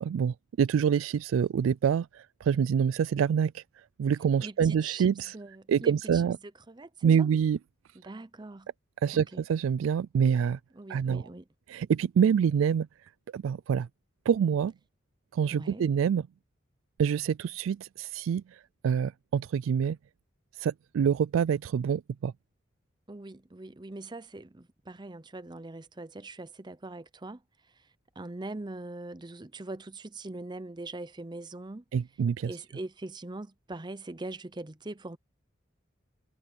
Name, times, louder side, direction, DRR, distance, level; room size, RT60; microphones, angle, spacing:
voice 1, 0.0-3.6 4.0-5.3 5.7-6.4 7.0-7.6 9.0-10.6 10.9-11.2 11.7-12.9 13.3-13.9 14.3-14.7 15.3-16.3 17.0-18.4 18.8-20.0 20.6-22.3 31.9-32.5, right 7 dB, 85° right, 0.3 m, -26 dB
voice 2, 4.4-6.2 6.7-7.3 8.0-8.7 9.1-9.4 10.7-11.4 15.5-15.8 23.1-27.4 27.7-27.9 28.2-31.8 32.4-35.2, right 2 dB, 20° right, 0.7 m, -42 dB
head